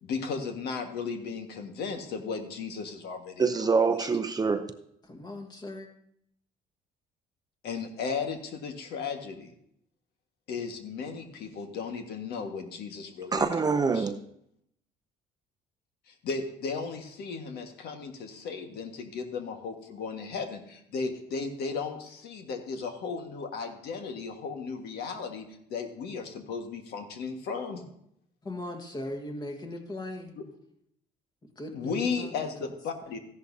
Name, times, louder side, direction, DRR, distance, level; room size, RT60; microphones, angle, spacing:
voice 1, 0.0-3.7 4.0-4.1 7.6-9.5 10.5-13.5 13.9-14.1 16.1-27.9 31.7-33.2, left 5 dB, 70° left, 1.6 m, -35 dB
voice 2, 3.4-4.7 13.3-14.2, right 4 dB, 25° right, 0.6 m, -25 dB
voice 3, 5.0-5.9 28.4-30.3 31.6-32.3, left 1 dB, 25° left, 1.6 m, -38 dB
14.5 x 11.0 x 2.8 m
cardioid pair, 110°, 17 cm